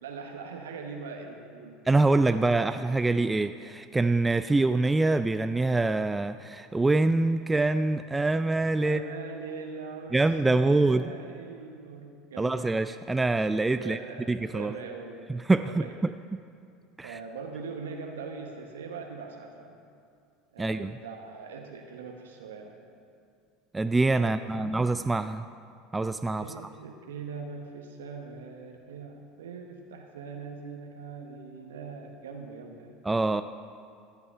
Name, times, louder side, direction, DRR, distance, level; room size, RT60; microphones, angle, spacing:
voice 1, 0.0-1.8 2.3-2.7 8.8-12.8 13.7-15.3 15.6-16.0 17.0-19.8 20.5-22.8 24.2-24.8 26.4-33.0, right 4 dB, 80° right, 3 dB, 1.0 m, -41 dB
voice 2, 1.9-9.0 10.1-11.1 12.4-14.0 14.3-14.8 15.3-16.1 17.0-17.2 20.6-20.9 23.7-25.4 25.9-26.5 33.0-33.4, right 2 dB, 15° right, 11 dB, 0.3 m, -25 dB
15.0 x 8.3 x 5.6 m, 2.4 s
hypercardioid pair, 75°, 0 cm